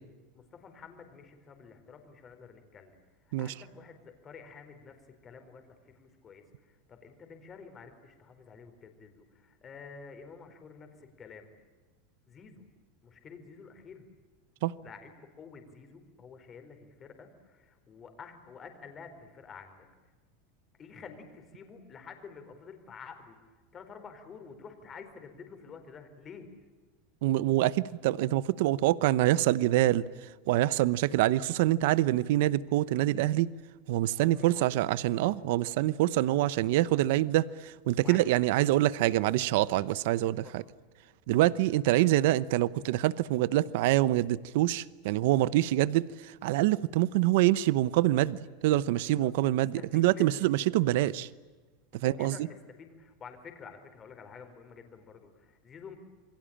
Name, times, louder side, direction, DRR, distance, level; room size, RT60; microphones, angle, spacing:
voice 1, 0.3-3.0 3.4-11.5 12.3-12.7 13.0-14.0 14.8-19.9 20.8-26.5 34.2-34.8 35.3-35.5 38.0-38.3 39.7-39.9 40.4-40.6 48.9-49.3 49.8-50.5 51.9-52.4 52.8-56.0, left 5 dB, 20° left, 7 dB, 4.4 m, -49 dB
voice 2, 27.2-30.0 30.5-33.5 33.9-40.6 41.3-51.3 51.9-52.4, right 15 dB, 65° right, 18 dB, 0.9 m, -26 dB
28.0 x 23.5 x 8.8 m, 1.3 s
supercardioid pair, 160°, 0 cm